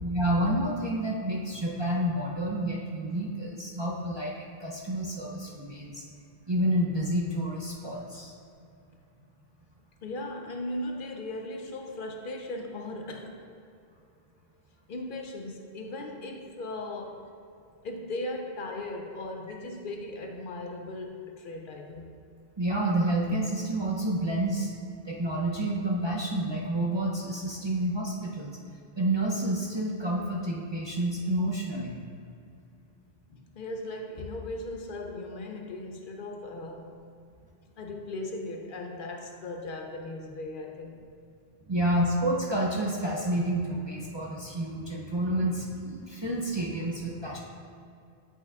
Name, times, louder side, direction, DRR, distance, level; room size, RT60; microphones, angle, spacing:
voice 1, 0.0-6.0 6.5-8.3 22.6-24.7 25.0-28.6 29.0-31.9 41.7-47.4, right 1 dB, 35° right, -4 dB, 0.5 m, -29 dB
voice 2, 10.0-13.4 14.9-17.3 17.8-22.1 33.3-37.0 37.8-41.0, left 2 dB, 60° left, 3 dB, 0.6 m, -38 dB
8.9 x 5.5 x 2.3 m, 2.5 s
omnidirectional pair, 1.1 m